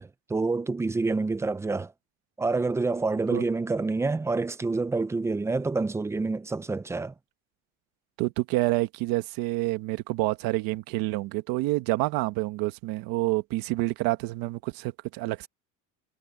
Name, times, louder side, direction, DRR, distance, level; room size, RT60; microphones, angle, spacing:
voice 1, 0.0-1.9 2.4-7.1, right 3 dB, 10° right, 0.4 m, -27 dB
voice 2, 8.2-15.5, right 19 dB, 65° right, 1.4 m, -28 dB
cardioid pair, 160°, 38 cm